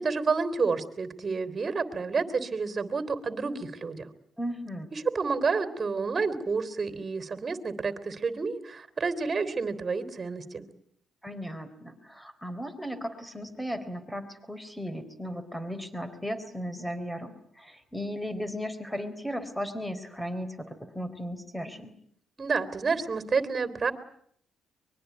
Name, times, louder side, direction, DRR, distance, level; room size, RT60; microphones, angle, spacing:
voice 1, 0.0-4.0 4.9-10.7 22.4-23.9, right 4 dB, 35° right, 12 dB, 3.5 m, -29 dB
voice 2, 4.4-4.9 11.2-21.9, equal, 5° left, 11 dB, 4.0 m, -36 dB
24.0 x 22.5 x 9.5 m, 0.65 s
cardioid pair, 90°, 0 cm